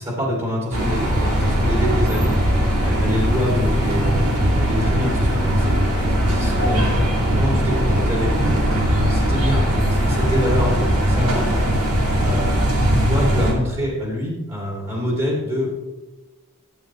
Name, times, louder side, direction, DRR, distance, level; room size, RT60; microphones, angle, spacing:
voice 1, 0.0-2.3 2.8-5.7 6.1-7.0 7.3-8.5 9.1-12.6 13.1-15.7, equal, 25° right, -3 dB, 2.7 m, -26 dB
sound 1, 0.7-13.5, equal, 80° right, 2.6 m, -19 dB
14.0 x 8.9 x 3.1 m, 1.1 s
head